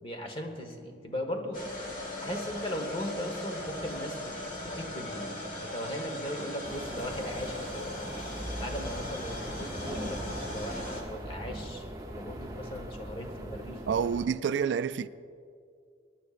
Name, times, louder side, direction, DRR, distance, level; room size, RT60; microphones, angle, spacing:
voice 1, 0.0-1.6 2.2-4.3 4.6-7.9 8.6-13.9, equal, 30° left, 1.3 m, -38 dB
sound 1, 1.5-11.0, left 1 dB, 45° left, 1.9 m, -39 dB
sound 2, 6.6-14.3, right 1 dB, 20° right, 0.9 m, -40 dB
voice 2, 13.9-15.1, right 7 dB, 75° right, 0.3 m, -28 dB
22.0 x 11.0 x 2.5 m
head